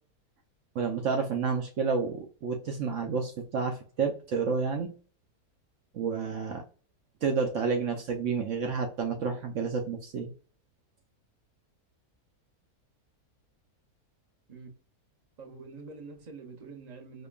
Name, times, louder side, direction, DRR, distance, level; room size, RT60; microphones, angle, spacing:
voice 1, 0.7-4.9 5.9-6.6 7.2-10.3, right 5 dB, 65° right, 0.9 m, -30 dB
voice 2, 15.4-17.3, right 4 dB, 35° right, 0.7 m, -45 dB
5.2 x 2.2 x 2.3 m
omnidirectional pair, 1.6 m